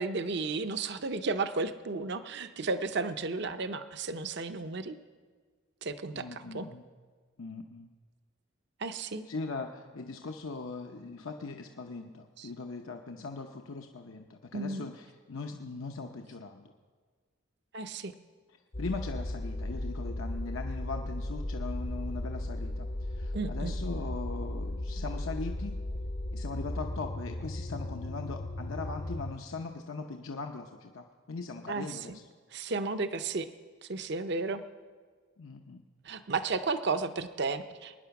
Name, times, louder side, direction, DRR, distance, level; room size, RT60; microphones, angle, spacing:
voice 1, 0.0-5.0 5.8-6.7 8.8-9.2 12.4-12.5 14.5-14.8 17.7-18.1 23.3-23.7 31.7-32.2 32.5-33.5 33.8-34.6 36.0-38.0, right 3 dB, 55° right, 10 dB, 0.6 m, -33 dB
voice 2, 6.1-6.8 7.4-7.9 9.3-16.6 18.8-25.8 26.3-32.2 35.4-35.8, left 3 dB, 75° left, 4 dB, 0.8 m, -40 dB
sound 1, 18.7-29.3, left 1 dB, 35° left, 0.6 m, -36 dB
21.5 x 10.0 x 5.9 m, 1.5 s
head